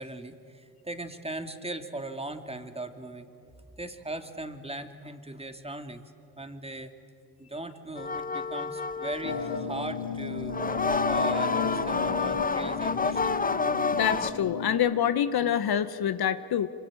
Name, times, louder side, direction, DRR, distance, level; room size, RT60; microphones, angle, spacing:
voice 1, 0.0-3.3 3.8-6.0 6.4-6.9 7.4-10.6 11.1-13.4, right 2 dB, 15° right, 7 dB, 2.5 m, -38 dB
sound 1, 8.0-9.7 10.4-14.3, left 4 dB, 20° left, 1.1 m, -29 dB
sound 2, 9.2-14.7, left 5 dB, 85° left, 3.4 m, -34 dB
voice 2, 14.0-16.7, left 9 dB, 55° left, 12 dB, 1.1 m, -26 dB
26.5 x 24.5 x 9.1 m, 2.5 s
hypercardioid pair, 55°, 44 cm